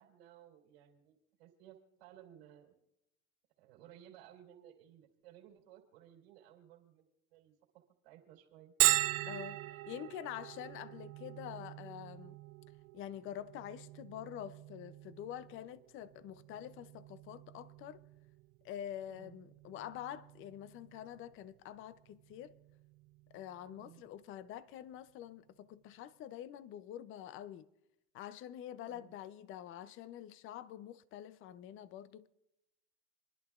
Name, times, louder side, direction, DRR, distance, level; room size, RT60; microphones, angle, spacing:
voice 1, 0.0-2.7 3.6-8.7 19.1-19.4 23.7-24.0 28.8-29.1, right 11 dB, 90° right, 2.9 m, -59 dB
Bell, 8.8-24.2, right 18 dB, 50° right, 0.6 m, -40 dB
voice 2, 9.2-12.4 12.9-18.0 18.6-22.5 23.3-27.7 28.1-32.3, left 11 dB, 45° left, 0.6 m, -46 dB
28.5 x 11.0 x 2.4 m
supercardioid pair, 115°, 30 cm